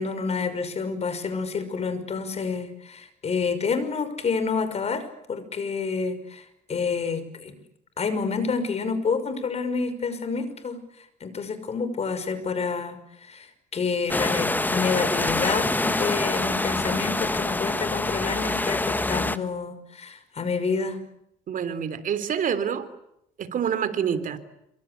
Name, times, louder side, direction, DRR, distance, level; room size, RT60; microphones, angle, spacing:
voice 1, 0.0-5.0 5.3-7.5 8.0-21.0, left 5 dB, 40° left, 11 dB, 5.8 m, -28 dB
sound 1, 14.1-19.4, left 2 dB, 10° left, 1.4 m, -26 dB
voice 2, 21.5-22.9 23.4-24.4, right 8 dB, 50° right, 11 dB, 3.6 m, -27 dB
27.0 x 25.5 x 8.4 m, 0.79 s
cardioid pair, 110°, 17 cm